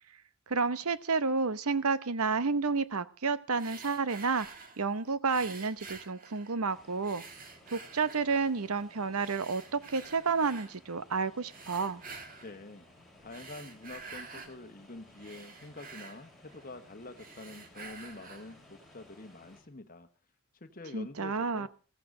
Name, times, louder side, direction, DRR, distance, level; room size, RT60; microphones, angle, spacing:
voice 1, 0.5-4.5 4.8-7.2 7.7-12.0 20.9-21.7, right 4 dB, 80° right, 15 dB, 0.9 m, -30 dB
sound 1, 3.5-4.9 5.3-6.7 7.0-8.6 9.1-10.7 11.4-12.6 13.2-14.6 15.0-16.8 17.1-18.6, right 4 dB, 40° right, 1.7 m, -49 dB
sound 2, 6.7-19.6, left 1 dB, ahead, 4.7 m, -58 dB
voice 2, 12.4-12.9 13.2-20.1 20.5-21.7, left 2 dB, 40° left, 8 dB, 1.3 m, -47 dB
15.0 x 15.0 x 3.8 m, 0.36 s
head